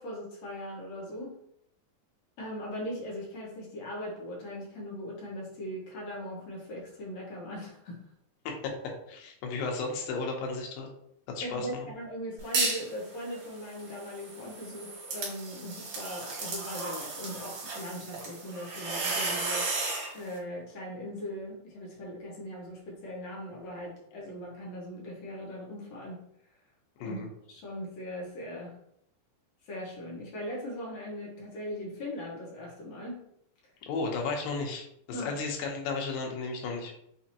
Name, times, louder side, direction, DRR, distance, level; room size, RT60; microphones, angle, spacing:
voice 1, 0.0-1.3 2.4-8.0 11.4-19.7 20.1-26.2 27.0-27.2 27.5-28.7 29.6-33.2 35.1-35.3, equal, 65° left, -3 dB, 1.9 m, -39 dB
voice 2, 8.5-10.9 11.3-11.9 27.0-27.3 33.9-36.9, left 4 dB, 85° left, 1 dB, 2.6 m, -34 dB
sound 1, 12.4-12.9 13.3-20.1, right 3 dB, 70° right, 2.9 m, -34 dB
6.2 x 2.6 x 2.8 m, 0.72 s
omnidirectional pair, 4.1 m